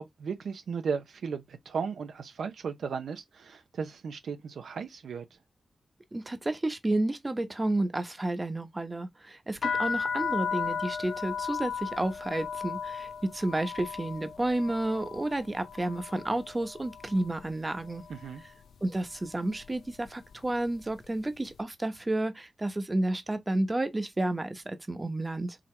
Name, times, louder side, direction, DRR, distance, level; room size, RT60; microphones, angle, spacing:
voice 1, 0.0-5.2 18.1-18.4, right 6 dB, 85° right, 0.7 m, -35 dB
voice 2, 6.1-18.0 18.8-25.6, right 1 dB, 25° right, 1.0 m, -31 dB
sound 1, 9.6-17.5 17.8-18.4 19.1-19.3 19.6-21.1, left 6 dB, 80° left, 0.5 m, -35 dB
4.8 x 2.9 x 3.3 m
cardioid pair, 50°, 0 cm